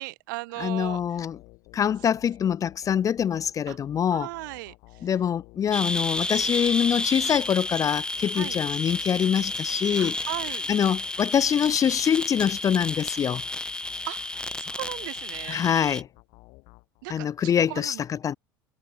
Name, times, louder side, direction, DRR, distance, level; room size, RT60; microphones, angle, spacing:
voice 1, 0.0-1.0 3.7-3.8 4.1-4.7 8.3-8.6 9.9-10.7 14.1-15.6 17.0-18.0, right 23 dB, 65° right, 2.2 m, -37 dB
voice 2, 0.6-1.4 1.7-4.3 5.0-10.3 10.7-13.4 15.5-16.1 17.1-18.4, left 8 dB, 30° left, 0.6 m, -24 dB
sound 1, 0.8-17.4, left 24 dB, 55° left, 2.8 m, -53 dB
sound 2, 5.7-16.0, left 2 dB, 10° left, 1.5 m, -31 dB
hypercardioid pair, 75°, 11 cm